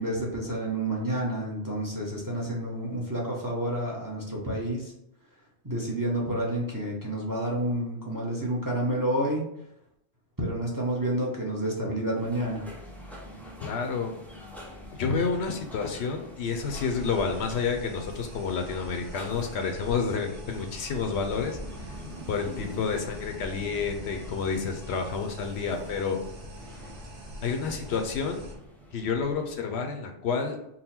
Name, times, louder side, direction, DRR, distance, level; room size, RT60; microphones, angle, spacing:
voice 1, 0.0-4.9 5.6-9.5 10.4-12.7, right 1 dB, 20° right, -2 dB, 0.7 m, -29 dB
sound 1, 12.1-29.6, equal, ahead, 0.4 m, -45 dB
voice 2, 13.6-14.2 14.9-21.9 22.3-26.2 27.4-28.5 28.9-30.6, left 5 dB, 70° left, 5 dB, 0.8 m, -29 dB
sound 2, 16.5-28.5, equal, 70° right, 1.3 m, -44 dB
3.9 x 2.1 x 4.2 m, 0.80 s
omnidirectional pair, 1.2 m